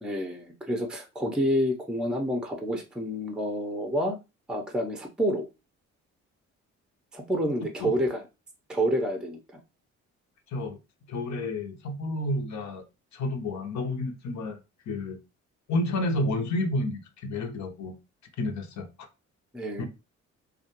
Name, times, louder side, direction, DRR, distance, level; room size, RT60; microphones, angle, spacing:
voice 1, 0.0-4.2 4.5-5.4 7.1-8.2 8.7-9.4 19.5-19.9, equal, 5° right, 0.5 m, -28 dB
voice 2, 11.1-12.8 13.1-15.2 15.7-17.9 18.4-19.1 19.8-19.9, left 1 dB, 65° left, 0.7 m, -30 dB
2.4 x 2.2 x 2.9 m
cardioid pair, 90°, 30 cm